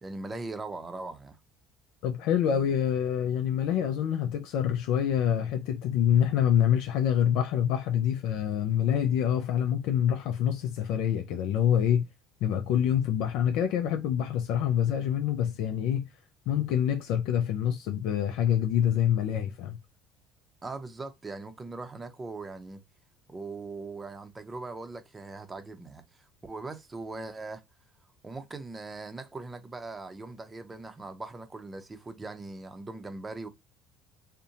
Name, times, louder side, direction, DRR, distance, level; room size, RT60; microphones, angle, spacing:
voice 1, 0.0-1.4 20.6-22.8 23.3-26.0 26.4-27.6 28.2-33.5, right 3 dB, 25° right, 0.6 m, -40 dB
voice 2, 2.0-12.0 12.4-16.1 16.5-19.8, left 9 dB, 70° left, 0.3 m, -26 dB
2.6 x 2.1 x 2.7 m
hypercardioid pair, 70°, 0 cm